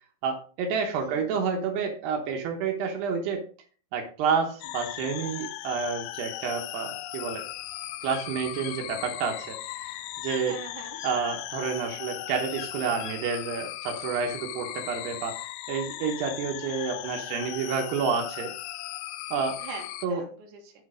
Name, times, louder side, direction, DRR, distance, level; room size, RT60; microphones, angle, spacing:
voice 1, 0.2-3.4 3.9-7.4 8.0-10.0 10.2-10.6 11.0-15.4 15.7-18.5 19.3-19.6 20.0-20.2, right 5 dB, 80° right, 2 dB, 3.0 m, -29 dB
voice 2, 1.0-1.6 10.5-11.0 19.6-20.7, right 5 dB, 55° right, 1 dB, 3.0 m, -43 dB
sound 1, 4.6-20.1, left 15 dB, 85° left, 2.2 m, -38 dB
sound 2, 7.3-11.1 11.6-13.3, left 5 dB, 40° left, 2.1 m, -44 dB
7.8 x 6.2 x 4.9 m, 0.40 s
omnidirectional pair, 4.8 m